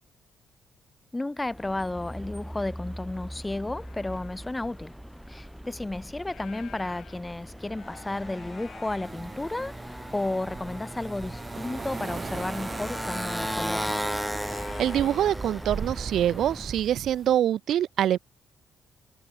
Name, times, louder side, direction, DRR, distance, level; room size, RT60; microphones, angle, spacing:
voice 1, 1.1-4.9 5.3-13.9, left 2 dB, 15° left, 1.5 m, -33 dB
Motorcycle, 1.4-16.8, equal, ahead, 5.2 m, -37 dB
sound 1, 3.4-4.5 5.2-5.3 5.7-9.8 10.3-11.2 11.4-11.5 12.0-12.1 12.4-13.0 13.7-16.8, left 10 dB, 70° left, 6.7 m, -52 dB
sound 2, 9.0-17.4, right 5 dB, 40° right, 1.6 m, -40 dB
voice 2, 14.8-18.2, right 11 dB, 70° right, 0.5 m, -25 dB
cardioid pair, 90°, 0 cm